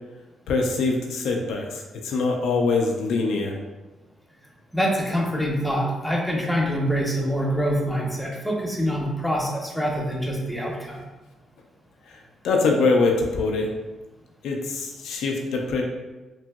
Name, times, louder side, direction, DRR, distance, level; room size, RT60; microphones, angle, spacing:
voice 1, 0.5-3.6 12.1-13.7 14.4-15.8, left 3 dB, 80° left, 1 dB, 0.3 m, -24 dB
voice 2, 4.7-11.0, equal, 5° left, -1 dB, 0.6 m, -25 dB
2.8 x 2.6 x 2.3 m, 1.2 s
cardioid pair, 85°, 0 cm